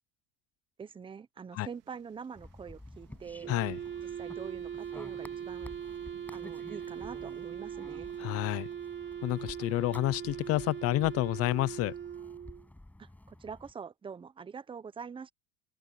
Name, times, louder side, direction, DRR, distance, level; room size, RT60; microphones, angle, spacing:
voice 1, 0.8-3.5 4.0-5.7 6.3-8.1 13.0-15.3, right 6 dB, 15° right, 0.9 m, -45 dB
sound 1, 1.5-8.8, right 16 dB, 60° right, 4.2 m, -60 dB
sound 2, 2.3-13.7, left 1 dB, 5° left, 7.9 m, -52 dB
Wind instrument woodwind instrument, 3.4-12.7, right 8 dB, 35° right, 3.2 m, -40 dB
voice 2, 8.2-8.7 9.2-11.9, left 17 dB, 55° left, 0.8 m, -29 dB
open air
cardioid pair, 125°, 29 cm